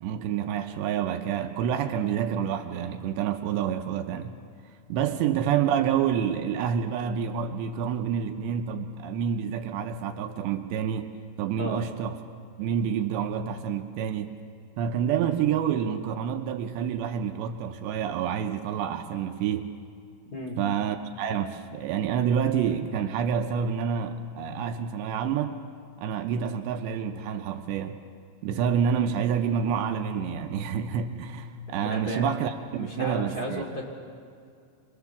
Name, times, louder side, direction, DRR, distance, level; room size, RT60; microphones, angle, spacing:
voice 1, 0.0-4.4 4.9-11.1 11.4-12.2 12.6-14.3 14.8-19.7 20.6-25.6 26.0-28.0 28.4-33.6, right 8 dB, 80° right, 6 dB, 2.9 m, -28 dB
voice 2, 31.7-32.3 32.8-33.8, equal, 30° left, 0 dB, 2.0 m, -34 dB
26.0 x 22.0 x 7.1 m, 2.3 s
omnidirectional pair, 5.2 m